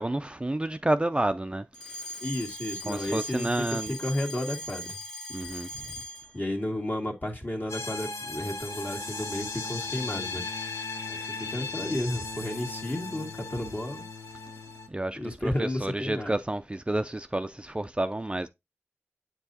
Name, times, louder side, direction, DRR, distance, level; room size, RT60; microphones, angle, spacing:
voice 1, 0.0-1.6 2.9-4.0 5.3-5.7 14.9-18.5, right 1 dB, 20° right, 0.4 m, -30 dB
Alarm, 1.7-6.4, equal, 10° left, 1.7 m, -39 dB
voice 2, 2.2-5.0 6.3-10.4 11.1-14.1 15.2-16.4, left 1 dB, 40° left, 1.8 m, -32 dB
sound 1, 7.7-14.9, left 3 dB, 85° left, 0.9 m, -37 dB
7.8 x 4.6 x 2.7 m
wide cardioid pair, 50°, 5 cm